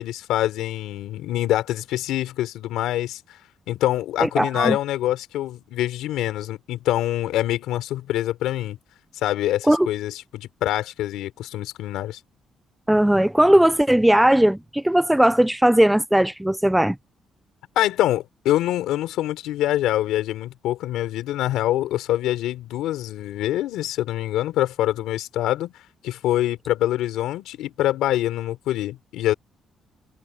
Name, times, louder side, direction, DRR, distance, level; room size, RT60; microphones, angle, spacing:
voice 1, 0.0-3.2 3.7-8.8 9.1-12.2 17.8-25.7 26.0-29.3, left 14 dB, 90° left, 3.7 m, -25 dB
voice 2, 4.2-4.8 9.7-9.9 12.9-17.0, right 1 dB, 5° right, 0.5 m, -18 dB
cardioid pair, 90°, 0 cm